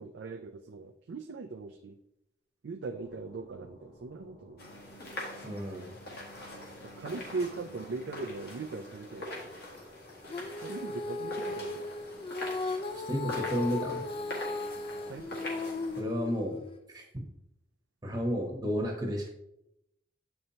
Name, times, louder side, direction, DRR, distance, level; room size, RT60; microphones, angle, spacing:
voice 1, 0.0-2.0 2.6-4.6 7.0-9.5 10.6-11.8 15.1-15.3, right 3 dB, 85° right, 5 dB, 0.4 m, -39 dB
sound 1, 2.9-16.1, left 1 dB, 75° left, 2.2 m, -56 dB
sound 2, 4.6-16.0, left 1 dB, 60° left, 1.8 m, -44 dB
voice 2, 5.4-5.9 12.9-14.0 16.0-16.6 16.9-17.0 18.0-19.3, equal, 20° right, 0 dB, 1.0 m, -32 dB
Female singing, 10.3-16.8, left 3 dB, 30° left, 0.3 m, -37 dB
7.7 x 5.5 x 2.8 m, 0.82 s
head